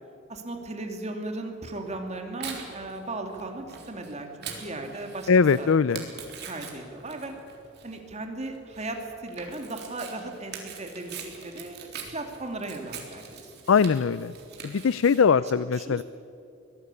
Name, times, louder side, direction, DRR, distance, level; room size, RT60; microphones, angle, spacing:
voice 1, 0.3-5.7 6.4-7.3 7.8-13.4 15.3-15.4 15.7-16.0, right 2 dB, 35° right, 4 dB, 2.5 m, -37 dB
Tearing, 1.7-15.2, right 6 dB, 55° right, 3.8 m, -43 dB
voice 2, 5.3-6.1 13.7-14.3 14.6-16.0, left 6 dB, 75° left, 17 dB, 0.4 m, -21 dB
24.0 x 18.0 x 8.4 m, 2.7 s
head